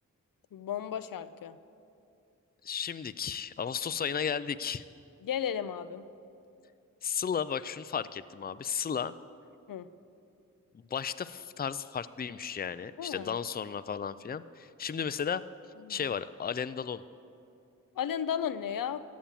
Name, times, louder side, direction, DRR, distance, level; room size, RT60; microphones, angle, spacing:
voice 1, 0.5-1.6 5.2-6.0 9.7-9.9 13.0-13.3 15.8-16.1 18.0-19.0, left 9 dB, 80° left, 12 dB, 0.6 m, -34 dB
voice 2, 2.6-4.8 7.0-9.1 10.9-15.4 15.9-17.0, left 7 dB, 30° left, 14 dB, 0.5 m, -34 dB
14.5 x 8.6 x 7.4 m, 2.5 s
cardioid pair, 50°, 33 cm